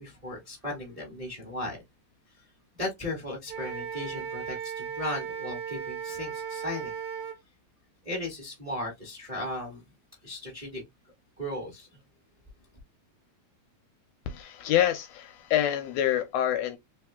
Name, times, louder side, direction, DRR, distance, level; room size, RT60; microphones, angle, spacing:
voice 1, 0.0-1.8 2.8-6.9 8.0-9.8 10.2-10.8 11.4-11.9, left 1 dB, 20° right, 0.9 m, -36 dB
Wind instrument woodwind instrument, 3.5-7.4, right 7 dB, 85° right, 1.3 m, -36 dB
voice 2, 14.3-16.8, left 11 dB, 80° left, 1.6 m, -26 dB
4.2 x 3.4 x 2.3 m
omnidirectional pair, 3.4 m